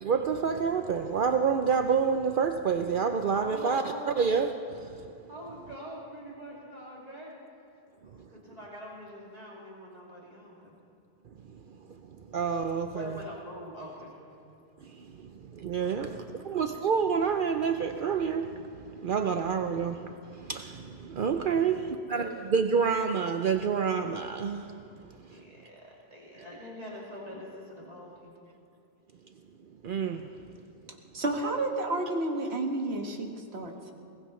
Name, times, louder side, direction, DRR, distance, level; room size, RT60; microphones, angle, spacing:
voice 1, 0.0-3.8 4.2-5.1 8.2-8.3 11.4-11.6 12.1-13.2 14.8-24.9 25.2-25.4 29.8-30.3, right 6 dB, 60° right, 7 dB, 0.7 m, -28 dB
voice 2, 3.1-4.1 5.3-7.3 8.0-10.7 12.9-14.2 15.8-16.5 21.7-22.3 25.3-28.5, equal, 40° right, -5 dB, 2.5 m, -44 dB
voice 3, 31.1-33.9, right 2 dB, 80° right, 2 dB, 1.8 m, -31 dB
21.0 x 20.0 x 3.2 m, 2.7 s
omnidirectional pair, 1.1 m